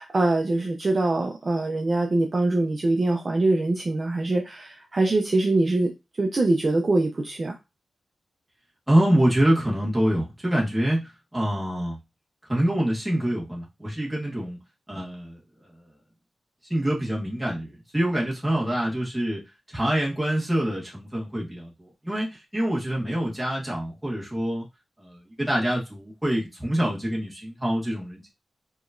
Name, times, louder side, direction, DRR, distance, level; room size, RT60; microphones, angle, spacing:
voice 1, 0.0-5.9 6.2-7.5, right 2 dB, 35° right, 0.5 m, -23 dB
voice 2, 8.9-11.0 11.3-12.0 12.5-14.6 14.9-15.4 16.7-19.4 19.7-24.7 25.0-28.3, right 1 dB, 5° right, 1.5 m, -25 dB
5.0 x 2.9 x 2.5 m
wide cardioid pair, 165°, 0 cm